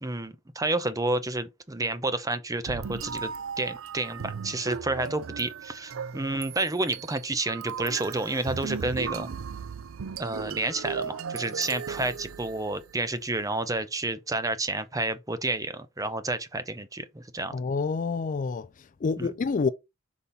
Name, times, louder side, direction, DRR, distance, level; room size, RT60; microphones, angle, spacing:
voice 1, 0.0-3.3 3.6-9.3 10.2-17.6 19.2-19.3, right 2 dB, 15° right, 0.7 m, -30 dB
sound 1, 2.7-13.0, right 6 dB, 85° right, 0.5 m, -37 dB
voice 2, 17.5-19.7, left 4 dB, 40° left, 0.4 m, -28 dB
5.2 x 4.2 x 5.5 m
head